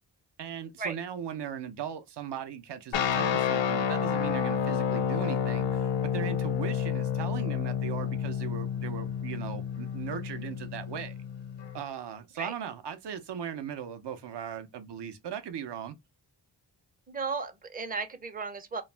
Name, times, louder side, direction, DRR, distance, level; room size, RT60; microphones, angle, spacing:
voice 1, 0.4-11.2 11.7-15.9, right 8 dB, 60° right, 0.6 m, -38 dB
sound 1, 2.9-11.8, left 8 dB, 70° left, 0.5 m, -30 dB
voice 2, 17.1-18.8, right 4 dB, 20° right, 0.5 m, -35 dB
2.3 x 2.0 x 3.2 m
cardioid pair, 65°, 46 cm